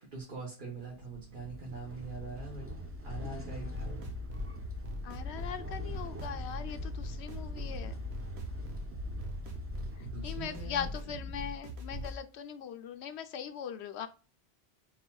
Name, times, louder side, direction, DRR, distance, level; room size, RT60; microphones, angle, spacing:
voice 1, 0.1-2.7 3.0-4.1 10.0-10.9, right 4 dB, 55° right, -3 dB, 1.2 m, -43 dB
sound 1, 0.9-11.9, left 1 dB, 15° right, 0.5 m, -43 dB
sound 2, 3.5-12.2, left 1 dB, 75° right, 1.2 m, -42 dB
voice 2, 5.0-7.9 10.2-14.1, left 8 dB, 85° left, 9 dB, 0.9 m, -40 dB
4.2 x 4.0 x 2.3 m, 0.34 s
omnidirectional pair, 1.1 m